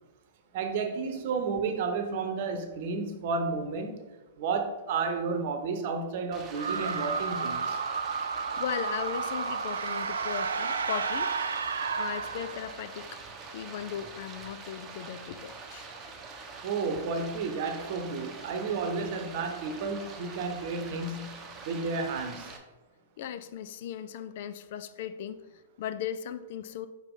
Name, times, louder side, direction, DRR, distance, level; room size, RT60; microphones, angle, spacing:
voice 1, 0.5-4.0 4.4-7.8 16.6-22.5, right 4 dB, 50° right, 6 dB, 0.9 m, -32 dB
Stream, 6.3-22.6, right 4 dB, 25° right, 0.9 m, -45 dB
sound 1, 6.5-13.0, right 5 dB, 75° right, 0.5 m, -32 dB
voice 2, 8.6-11.3 12.0-13.2 13.5-15.9 23.2-25.4 25.8-26.9, left 9 dB, 55° left, 12 dB, 0.4 m, -37 dB
5.5 x 4.8 x 3.7 m, 1.1 s
figure-of-eight pair, 110°, 0 cm